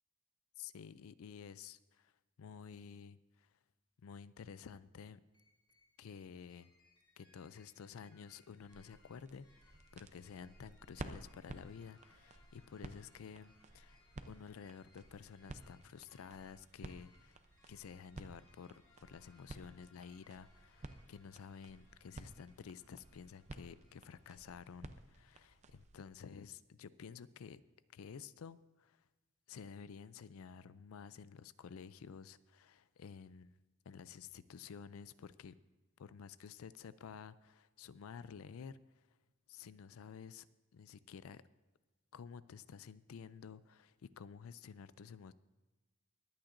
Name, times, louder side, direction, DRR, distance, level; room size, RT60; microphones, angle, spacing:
voice 1, 0.6-2.1 2.4-3.5 4.0-5.2 6.0-6.7 7.2-14.0 14.3-17.4 17.7-27.6 27.9-29.0 29.5-33.5 33.9-35.6 36.0-39.1 39.5-40.5 40.7-41.4 42.1-45.3, left 6 dB, 80° left, 17 dB, 0.4 m, -52 dB
sound 1, 5.3-24.8, left 2 dB, 20° left, 4.3 m, -70 dB
sound 2, 8.6-26.1, right 2 dB, 35° right, 0.6 m, -54 dB
22.5 x 8.8 x 2.6 m, 1.2 s
head